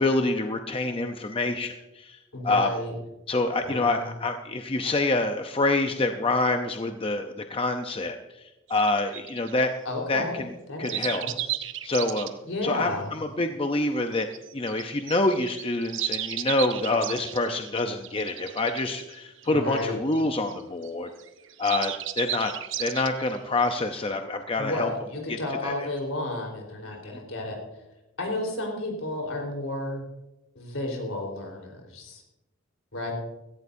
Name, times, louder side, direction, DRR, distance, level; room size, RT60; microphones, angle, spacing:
voice 1, 0.0-2.2 2.4-2.7 3.3-8.2 8.7-9.7 10.1-10.5 10.8-11.3 11.8-14.3 14.5-21.1 21.6-22.5 22.8-24.9 25.3-25.4 25.6-25.9 27.0-27.2, left 2 dB, 25° left, 6 dB, 0.6 m, -26 dB
voice 2, 2.3-2.9 3.6-4.1 9.8-10.4 10.7-11.6 12.5-13.1 19.5-20.0 24.6-27.6 28.2-30.0 30.6-32.2 32.9-33.1, left 1 dB, 70° left, 1 dB, 4.0 m, -32 dB
sound 1, 8.7-9.6 10.8-12.3 14.0-20.9 21.2-24.2, right 12 dB, 60° right, 0.8 m, -34 dB
16.5 x 15.5 x 2.7 m, 0.97 s
head